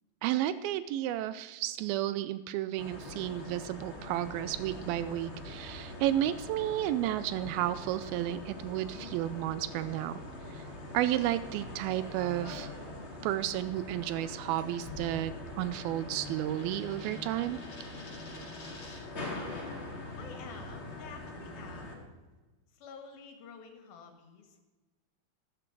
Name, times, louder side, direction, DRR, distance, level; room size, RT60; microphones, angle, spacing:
voice 1, 0.2-10.1 10.5-10.7 10.9-12.7 13.2-17.6, right 13 dB, 85° right, 14 dB, 2.4 m, -32 dB
sound 1, 2.8-21.9, left 2 dB, 20° left, 2.0 m, -43 dB
sound 2, 11.1-19.2, left 2 dB, 45° left, 5.3 m, -54 dB
voice 2, 20.2-22.0 22.7-24.6, left 5 dB, 80° left, 5 dB, 3.4 m, -49 dB
13.0 x 13.0 x 4.7 m, 1.2 s
omnidirectional pair, 4.3 m